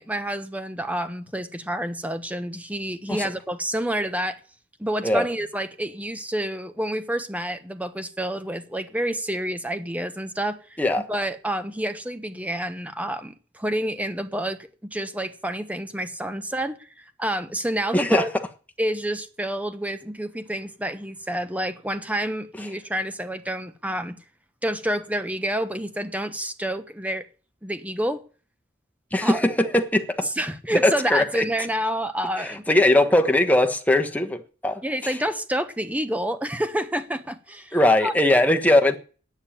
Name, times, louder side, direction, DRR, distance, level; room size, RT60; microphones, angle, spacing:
voice 1, 0.0-4.4 4.8-10.6 10.9-18.3 18.8-24.2 24.6-27.3 27.6-28.2 29.2-29.5 30.4-32.6 34.8-37.8 38.0-38.1, right 1 dB, 10° right, 1.1 m, -28 dB
voice 2, 17.9-18.3 29.1-30.3 30.7-31.4 32.4-35.2 37.7-39.0, left 1 dB, 10° left, 1.3 m, -20 dB
9.8 x 8.8 x 8.7 m
head